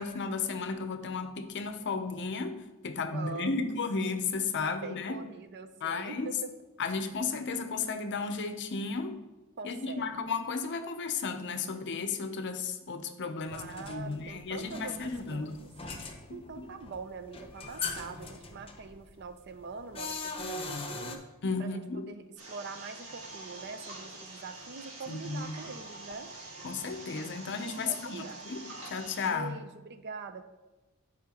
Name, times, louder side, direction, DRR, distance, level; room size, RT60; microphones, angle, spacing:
voice 1, 0.0-5.2 5.8-6.3 6.8-9.2 9.6-15.6 16.3-16.7 21.4-22.1 25.1-25.5 26.6-28.6 28.9-29.6, left 4 dB, 55° left, 9 dB, 0.6 m, -34 dB
voice 2, 3.1-3.7 4.6-6.5 9.6-10.3 13.5-15.7 16.3-21.2 21.6-26.3 27.9-28.5 29.3-30.4, right 4 dB, 50° right, 10 dB, 0.5 m, -44 dB
sound 1, 13.4-21.1, left 3 dB, 25° left, 0.8 m, -41 dB
sound 2, 22.4-29.3, right 2 dB, 65° right, 2.0 m, -46 dB
12.0 x 5.0 x 2.9 m, 1.1 s
head